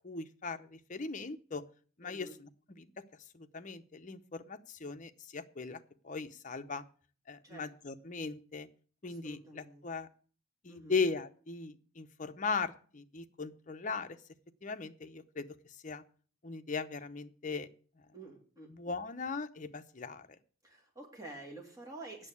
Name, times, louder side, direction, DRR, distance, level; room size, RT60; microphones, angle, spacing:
voice 1, 0.0-1.6 2.0-3.0 3.3-6.8 7.3-8.7 9.0-10.1 10.6-14.2 14.6-15.5 15.8-16.0 16.4-17.7 18.7-20.4, left 4 dB, 40° left, 9 dB, 0.7 m, -38 dB
voice 2, 2.0-2.4 7.4-7.7 9.0-9.8 10.7-11.0 18.1-18.9 20.6-22.3, right 2 dB, 15° right, 1 dB, 2.6 m, -49 dB
8.9 x 7.2 x 8.4 m, 0.43 s
head